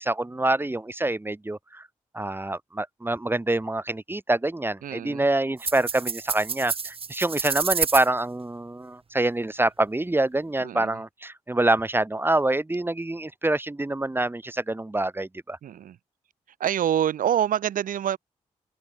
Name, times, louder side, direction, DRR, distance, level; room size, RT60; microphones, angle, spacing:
voice 1, 0.0-1.9 2.1-15.6, right 2 dB, 15° right, 0.9 m, -26 dB
voice 2, 4.8-5.2 10.6-11.0 15.6-16.0 16.6-18.2, right 10 dB, 85° right, 1.6 m, -26 dB
sound 1, 5.6-8.1, right 5 dB, 45° right, 0.7 m, -29 dB
open air
supercardioid pair, 40°, 14 cm